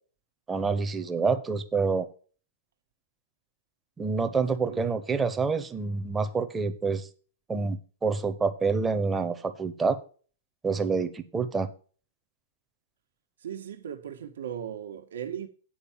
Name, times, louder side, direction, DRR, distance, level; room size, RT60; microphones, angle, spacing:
voice 1, 0.5-2.1 4.0-7.1 7.5-10.0 10.6-11.7, right 4 dB, 10° right, 0.7 m, -27 dB
voice 2, 4.4-5.0 13.4-15.5, right 9 dB, 90° right, 1.3 m, -38 dB
8.6 x 4.7 x 7.3 m
supercardioid pair, 170°, 0 cm